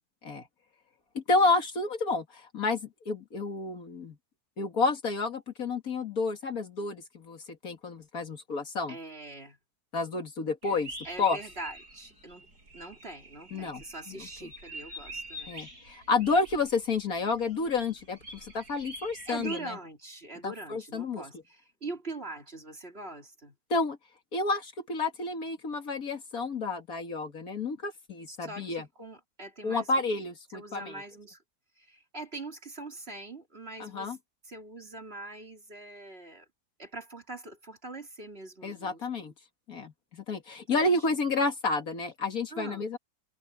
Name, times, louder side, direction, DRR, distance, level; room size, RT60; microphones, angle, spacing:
voice 1, 1.1-4.2 4.6-9.0 9.9-10.9 11.2-11.4 13.5-14.5 15.5-19.8 20.4-21.2 23.7-24.0 24.3-28.9 29.6-31.0 33.8-34.2 38.6-39.3 39.7-43.0, left 3 dB, 60° left, 2.5 m, -30 dB
voice 2, 8.9-9.6 11.0-12.5 12.7-15.5 19.3-23.6 28.3-29.9 30.5-31.4 31.8-34.2 34.4-36.5 36.8-39.0 40.7-40.9 41.3-41.4 42.5-42.9, right 2 dB, 35° right, 3.3 m, -43 dB
sound 1, 10.6-19.6, right 1 dB, 70° right, 8.0 m, -46 dB
omnidirectional pair, 1.7 m